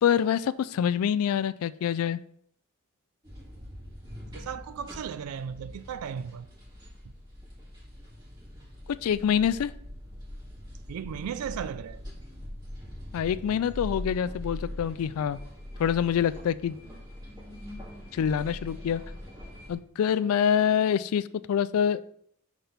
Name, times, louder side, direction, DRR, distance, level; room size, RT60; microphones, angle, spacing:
voice 1, 0.0-2.2 9.0-9.7 13.1-15.4 15.8-16.8 18.1-19.0 19.7-22.0, left 8 dB, 80° left, 0.3 m, -26 dB
sound 1, 3.2-19.7, left 1 dB, 20° right, 2.1 m, -42 dB
voice 2, 4.3-6.5 10.9-12.0, right 7 dB, 85° right, 0.3 m, -36 dB
6.0 x 4.2 x 5.1 m
head